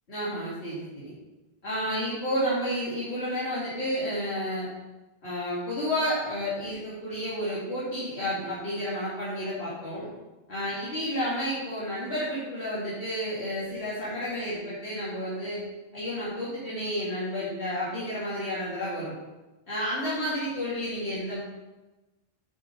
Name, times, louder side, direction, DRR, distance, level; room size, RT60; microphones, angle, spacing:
voice 1, 0.1-1.1 1.6-4.7 5.2-10.1 10.5-15.6 15.9-19.1 19.7-21.4, equal, 80° left, -11 dB, 2.7 m, -31 dB
8.4 x 6.7 x 4.0 m, 1.1 s
omnidirectional pair, 1.1 m